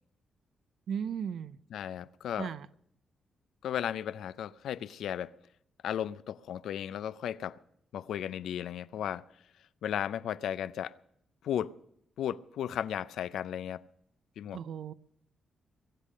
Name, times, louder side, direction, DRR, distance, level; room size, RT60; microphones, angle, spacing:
voice 1, 0.9-1.6 2.4-2.7 14.5-14.9, right 7 dB, 75° right, 0.6 m, -36 dB
voice 2, 1.7-2.5 3.6-5.3 5.8-7.6 7.9-9.2 9.8-11.0 11.4-11.7 12.2-13.8 14.4-14.6, left 10 dB, 85° left, 0.5 m, -35 dB
22.0 x 8.4 x 6.4 m
cardioid pair, 85°, 0 cm